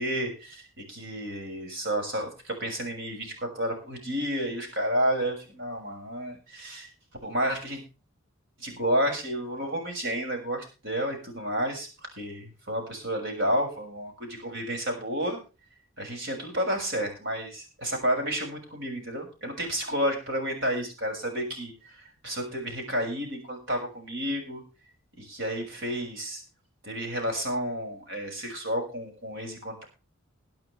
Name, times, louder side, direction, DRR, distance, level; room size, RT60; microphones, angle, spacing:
voice 1, 0.0-6.9 7.2-7.8 8.6-11.9 12.2-15.4 16.0-24.6 25.2-26.4 26.8-29.8, equal, 60° right, 2 dB, 6.5 m, -31 dB
22.0 x 8.7 x 3.4 m, 0.32 s
head